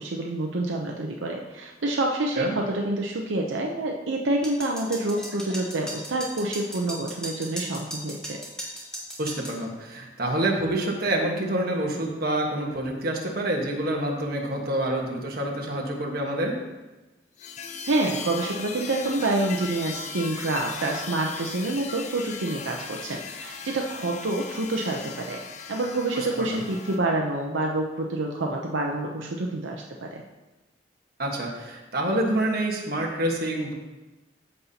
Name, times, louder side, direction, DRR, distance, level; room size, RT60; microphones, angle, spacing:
voice 1, 0.0-8.4 17.9-25.4 25.7-30.1, right 2 dB, 80° right, 0 dB, 0.7 m, -27 dB
sound 1, 4.4-9.6, right 1 dB, 5° left, 1.5 m, -37 dB
voice 2, 9.2-16.6 26.1-26.6 31.2-33.7, right 1 dB, 50° right, 0 dB, 1.4 m, -27 dB
sound 2, 17.4-27.0, left 5 dB, 35° left, 0.6 m, -38 dB
13.5 x 5.4 x 2.9 m, 1.1 s
head